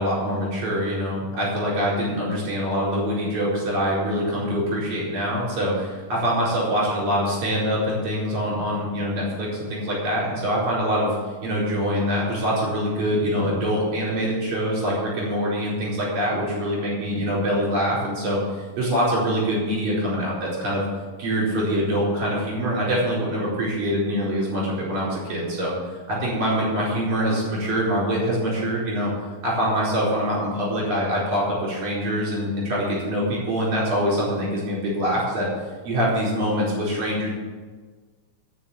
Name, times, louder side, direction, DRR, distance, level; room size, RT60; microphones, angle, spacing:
voice 1, 0.0-11.2 11.4-20.8 21.2-25.7 26.1-29.1 29.4-35.5 35.8-37.3, equal, 60° right, -6 dB, 5.9 m, -24 dB
13.0 x 6.0 x 8.5 m, 1.4 s
omnidirectional pair, 3.9 m